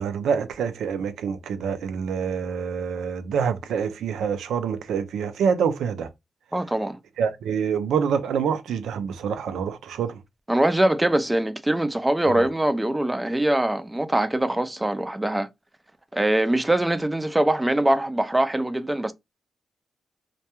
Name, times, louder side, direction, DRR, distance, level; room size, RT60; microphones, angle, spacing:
voice 1, 0.0-6.1 7.2-10.2 12.3-12.5, right 7 dB, 90° right, 0.4 m, -26 dB
voice 2, 6.5-7.0 10.5-15.5 16.1-19.1, right 1 dB, 15° right, 0.3 m, -23 dB
2.2 x 2.2 x 2.8 m
cardioid pair, 75°, 0 cm